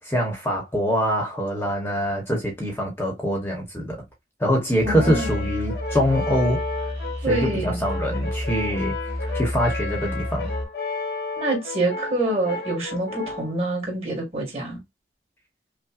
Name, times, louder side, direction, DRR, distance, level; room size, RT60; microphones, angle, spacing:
voice 1, 0.0-4.0 4.4-6.6 7.3-8.9 9.3-10.5, equal, 10° left, 0.9 m, -24 dB
voice 2, 4.8-5.4 7.2-7.8 11.4-14.8, right 2 dB, 35° right, 1.8 m, -26 dB
Musical instrument, 4.8-10.7, left 1 dB, 70° right, 1.9 m, -30 dB
Brass instrument, 5.0-13.5, left 3 dB, 60° left, 0.9 m, -33 dB
5.6 x 2.1 x 2.4 m
head